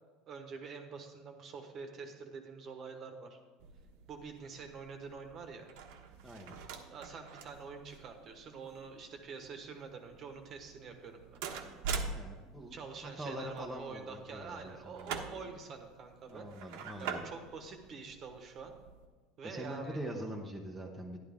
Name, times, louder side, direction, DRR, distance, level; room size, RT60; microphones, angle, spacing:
voice 1, 0.3-3.4 4.1-5.7 6.8-11.4 12.7-18.7 19.4-20.0, right 5 dB, 30° right, 5 dB, 1.2 m, -46 dB
sound 1, 3.6-19.1, right 5 dB, 70° right, 1.1 m, -45 dB
voice 2, 6.2-6.6 12.1-14.0 14.3-15.1 16.3-17.3 19.4-21.2, right 1 dB, ahead, -2 dB, 0.8 m, -43 dB
11.5 x 11.5 x 3.6 m, 1.4 s
cardioid pair, 170°, 0 cm